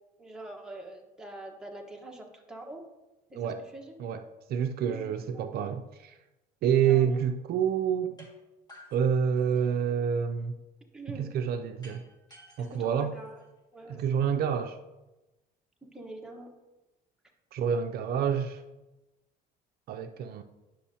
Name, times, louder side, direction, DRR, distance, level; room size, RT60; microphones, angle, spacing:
voice 1, 0.2-2.8 3.3-3.9 4.9-5.1 6.8-7.2 10.9-11.3 12.6-13.3 13.7-14.0 15.9-16.5, right 2 dB, 5° right, 1.2 m, -44 dB
voice 2, 4.0-6.2 6.6-8.3 8.9-10.6 11.1-12.1 12.6-13.1 13.9-14.8 17.5-18.6 19.9-20.4, right 8 dB, 65° right, 0.5 m, -28 dB
sound 1, 8.2-8.3 8.7-9.9 11.8-13.8, equal, 25° left, 1.9 m, -55 dB
9.7 x 6.2 x 2.8 m
cardioid pair, 110°, 17 cm